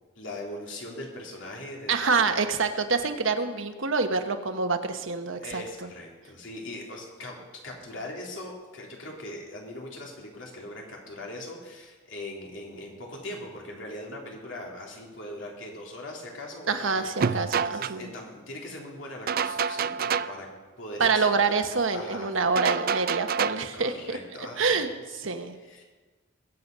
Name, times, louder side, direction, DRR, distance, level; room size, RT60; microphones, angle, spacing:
voice 1, 0.2-2.4 5.4-7.4 7.6-20.5 20.8-21.5 21.9-22.3 23.7-24.8 25.1-25.8, left 1 dB, 70° left, -1 dB, 3.5 m, -40 dB
voice 2, 1.9-5.6 16.7-18.1 21.0-24.2 24.6-25.5, right 4 dB, 90° right, 7 dB, 1.2 m, -26 dB
sound 1, 17.2-17.9 19.3-20.4 22.6-23.7, right 6 dB, 50° right, 0.4 m, -27 dB
21.5 x 8.2 x 5.5 m, 1.3 s
head